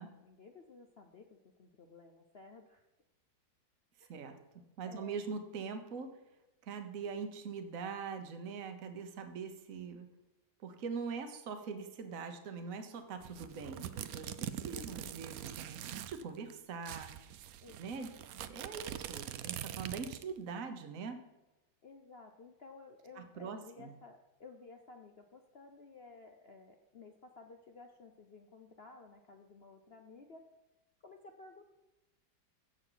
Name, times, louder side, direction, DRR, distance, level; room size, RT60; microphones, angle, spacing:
voice 1, 0.0-2.8 4.0-4.1 4.8-5.2 17.6-18.0 21.8-30.6 31.0-31.6, left 4 dB, 60° left, 4 dB, 0.6 m, -55 dB
voice 2, 4.0-6.1 6.6-10.1 10.6-17.1 17.8-18.1 18.4-21.2 23.2-23.9, right 5 dB, 50° right, 7 dB, 1.4 m, -43 dB
sound 1, 13.2-16.2 16.5-16.6 16.8-20.4, right 11 dB, 70° right, 0.8 m, -43 dB
16.0 x 6.3 x 4.0 m, 1.1 s
omnidirectional pair, 2.1 m